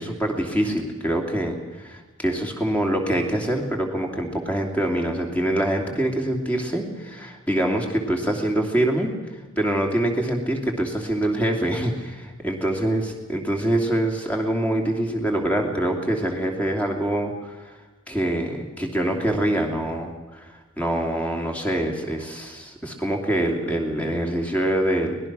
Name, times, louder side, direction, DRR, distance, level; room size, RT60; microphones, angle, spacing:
voice 1, 0.0-9.1 9.6-13.0 13.3-17.8 18.1-20.5 20.8-25.2, right 1 dB, 5° left, 2 dB, 2.7 m, -25 dB
24.0 x 19.0 x 6.1 m, 1.2 s
head